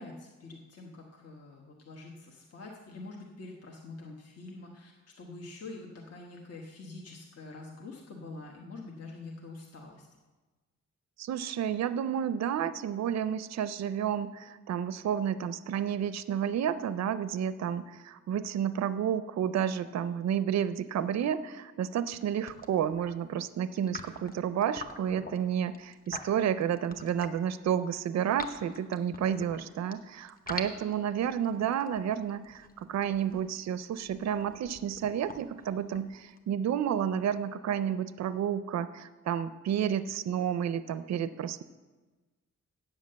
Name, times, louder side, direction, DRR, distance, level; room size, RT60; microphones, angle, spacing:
voice 1, 0.0-4.9 5.2-10.1, left 3 dB, 55° left, 0 dB, 1.1 m, -45 dB
voice 2, 11.2-41.6, right 9 dB, 60° right, 13 dB, 0.4 m, -31 dB
sound 1, 22.0-22.2 22.5-23.1 23.8-27.5 27.9-29.9 30.3-36.4, left 3 dB, 30° left, 0.8 m, -45 dB
8.8 x 7.4 x 7.6 m, 1.2 s
wide cardioid pair, 175°, 30 cm